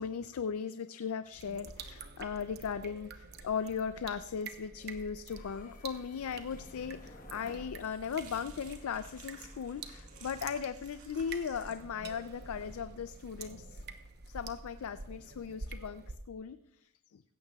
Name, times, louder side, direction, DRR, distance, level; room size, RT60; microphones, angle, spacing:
voice 1, 0.0-13.8 14.3-17.2, left 6 dB, 70° left, 12 dB, 0.4 m, -38 dB
sound 1, 1.3-16.2, right 3 dB, 50° right, 0.9 m, -48 dB
sound 2, 5.3-10.4, left 1 dB, 40° left, 1.2 m, -55 dB
sound 3, 7.7-15.5, right 6 dB, 65° right, 2.0 m, -58 dB
16.5 x 15.0 x 2.3 m, 0.83 s
head